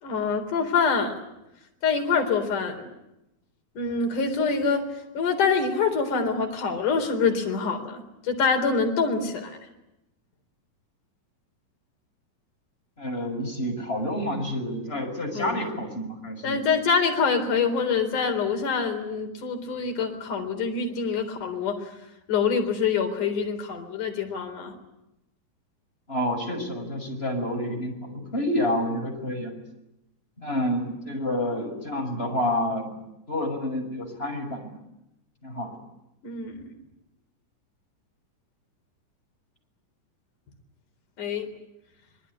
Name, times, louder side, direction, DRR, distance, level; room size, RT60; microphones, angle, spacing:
voice 1, 0.0-1.2 1.8-2.8 3.8-4.8 5.1-9.6 15.3-15.7 16.4-21.9 22.3-24.7 36.2-36.7 41.2-41.5, left 5 dB, 70° left, 5 dB, 5.4 m, -25 dB
voice 2, 13.0-16.6 26.1-29.5 30.4-32.9 33.3-34.8 35.4-35.7, left 1 dB, 15° left, 4 dB, 6.6 m, -29 dB
25.5 x 23.0 x 9.9 m, 0.89 s
omnidirectional pair, 3.8 m